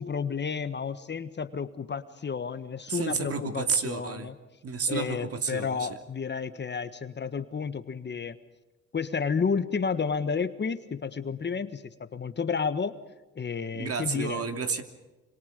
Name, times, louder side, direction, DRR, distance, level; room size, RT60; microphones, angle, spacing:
voice 1, 0.0-4.4 4.9-8.4 8.9-13.0 13.4-14.4, left 5 dB, 35° left, 12 dB, 1.5 m, -31 dB
voice 2, 2.9-4.3 4.6-5.9 13.7-14.8, right 5 dB, 50° right, 8 dB, 3.0 m, -31 dB
26.5 x 26.0 x 5.3 m, 1.1 s
cardioid pair, 90°, 30 cm